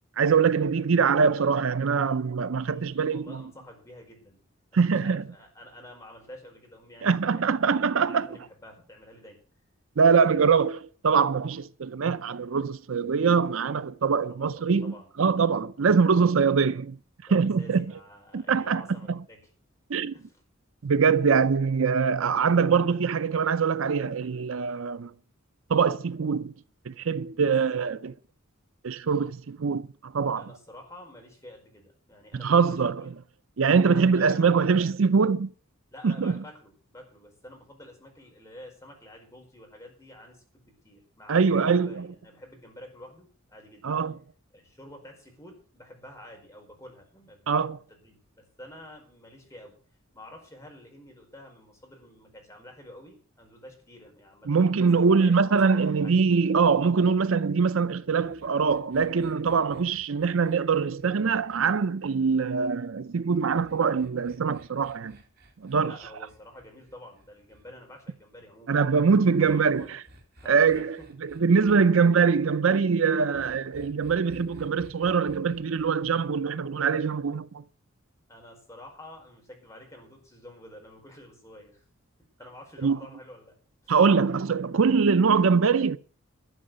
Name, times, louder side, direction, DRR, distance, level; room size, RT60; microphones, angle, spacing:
voice 1, 0.2-3.4 4.7-5.2 7.0-8.3 10.0-17.0 17.3-17.9 18.3-19.2 19.9-20.1 20.8-25.1 25.7-26.5 26.9-28.1 28.8-30.4 32.3-33.1 33.6-35.5 36.0-36.4 41.3-42.1 43.8-44.2 47.5-47.8 54.5-65.2 65.6-65.9 68.7-69.8 70.5-77.6 82.8-83.0 83.9-86.0, right 5 dB, 70° right, 0.5 m, -23 dB
voice 2, 2.5-4.4 4.7-7.5 8.0-9.4 10.2-10.6 14.3-15.1 17.2-19.4 20.1-20.4 27.7-28.1 30.4-32.8 33.8-34.5 35.9-43.8 44.5-49.7 50.1-56.1 65.7-68.8 69.4-69.9 70.4-71.1 78.3-81.8 82.4-83.5 83.8-84.0, left 1 dB, 15° left, 5.0 m, -49 dB
sound 1, 58.2-62.6 63.5-67.7 69.0-71.8 73.3-76.1, equal, 50° right, 2.5 m, -54 dB
12.5 x 6.4 x 9.1 m
head